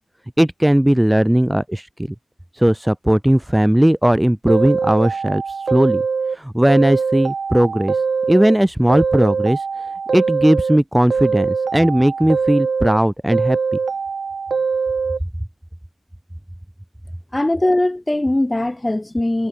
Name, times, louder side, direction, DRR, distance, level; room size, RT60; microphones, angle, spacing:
voice 1, 0.4-1.9 2.5-6.0 6.3-8.0 8.3-9.7 10.1-13.6, right 1 dB, 5° right, 0.6 m, -17 dB
sound 1, 4.5-6.4 6.7-8.6 8.9-10.8 11.1-13.0 13.3-15.2, right 5 dB, 70° right, 2.4 m, -22 dB
voice 2, 17.3-19.5, left 1 dB, 15° left, 4.2 m, -20 dB
wide cardioid pair, 125°, 0 cm